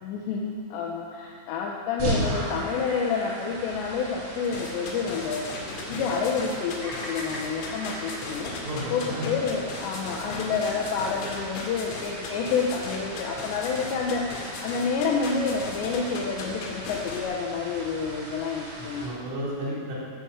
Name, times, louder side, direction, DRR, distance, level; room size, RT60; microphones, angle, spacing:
voice 1, 0.0-5.5 5.9-8.5 8.9-19.1, left 5 dB, 75° left, -1 dB, 2.8 m, -29 dB
sound 1, 2.0-19.0, right 1 dB, 55° right, 6.8 m, -38 dB
sound 2, 4.4-17.2, left 3 dB, 90° left, 4.9 m, -37 dB
Bird vocalization bird call bird song, 6.8-11.1, left 1 dB, 45° left, 1.3 m, -42 dB
voice 2, 8.6-9.3 19.0-19.9, equal, 75° right, -7 dB, 6.8 m, -32 dB
19.0 x 9.7 x 7.3 m, 2.3 s
omnidirectional pair, 5.9 m